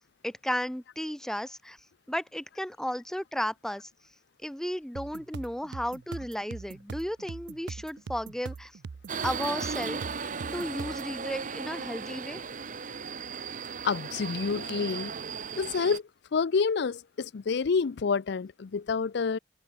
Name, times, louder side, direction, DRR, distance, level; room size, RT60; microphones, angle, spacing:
voice 1, 0.2-1.8 2.1-3.9 4.4-8.7 9.2-10.0 10.5-12.4, equal, 5° left, 0.6 m, -34 dB
sound 1, 5.0-11.1, right 5 dB, 65° right, 0.4 m, -42 dB
Subway metro underground, 9.1-16.0, right 5 dB, 45° right, 1.1 m, -36 dB
voice 2, 13.8-15.1 15.6-16.0 16.3-19.4, left 5 dB, 65° left, 0.5 m, -28 dB
open air
head